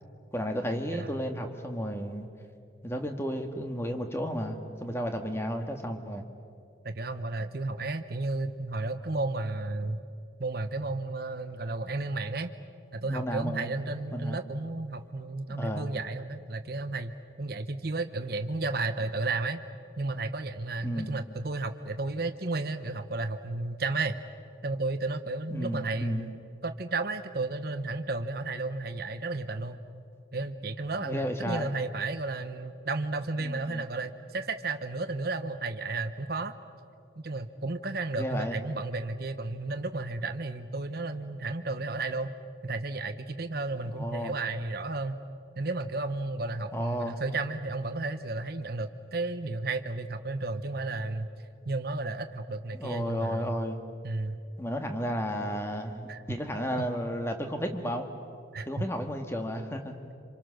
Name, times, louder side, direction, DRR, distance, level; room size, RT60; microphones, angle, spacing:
voice 1, 0.3-2.3 2.8-6.2 13.0-13.7 14.1-14.4 15.5-15.9 20.8-21.1 25.5-26.3 31.0-31.7 33.4-33.8 38.2-38.6 44.0-44.4 46.7-47.2 52.8-53.8 54.6-58.1 58.7-60.0, equal, 15° left, 5 dB, 1.7 m, -33 dB
voice 2, 6.8-10.0 10.4-12.5 12.9-17.1 17.4-19.6 20.0-24.2 24.6-26.3 26.6-29.8 30.3-36.5 37.2-42.3 42.6-45.2 45.6-51.3 51.6-53.5 54.0-54.4 56.1-56.2 58.5-58.8, right 3 dB, 55° right, 8 dB, 1.0 m, -33 dB
27.0 x 26.0 x 6.5 m, 2.4 s
head